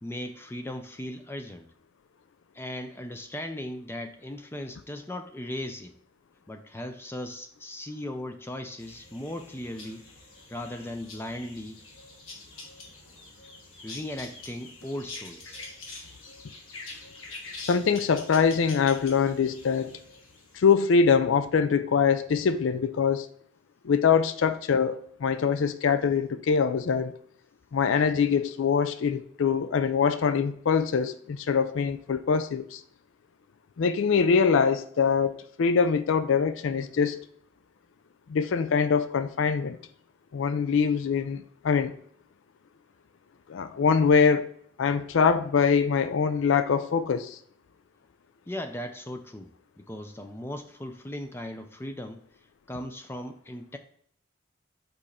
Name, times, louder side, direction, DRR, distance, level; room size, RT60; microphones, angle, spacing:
voice 1, 0.0-1.7 2.5-6.0 6.5-10.1 10.5-11.8 13.8-15.6 48.5-49.5 49.8-52.2 52.7-53.8, left 1 dB, 10° left, 0.4 m, -37 dB
sound 1, 8.8-21.0, left 3 dB, 90° left, 1.5 m, -45 dB
voice 2, 17.7-19.9 20.5-23.3 23.8-27.1 27.7-32.8 33.8-37.3 38.3-39.8 40.3-41.9 43.5-44.5 44.8-47.4, left 6 dB, 75° left, 0.4 m, -23 dB
5.3 x 4.9 x 4.2 m
head